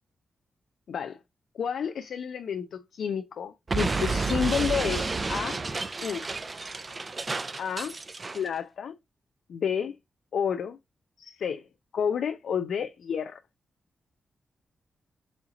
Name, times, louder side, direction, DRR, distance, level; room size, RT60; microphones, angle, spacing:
voice 1, 0.9-1.2 1.5-5.6 6.0-6.3 7.6-8.0 8.3-8.9 9.5-9.9 10.3-10.8 11.2-11.6 11.9-13.4, left 7 dB, 75° left, 0.4 m, -30 dB
Explosion, 3.7-8.5, right 3 dB, 30° right, 0.4 m, -30 dB
4.2 x 2.8 x 3.6 m
wide cardioid pair, 135°, 0 cm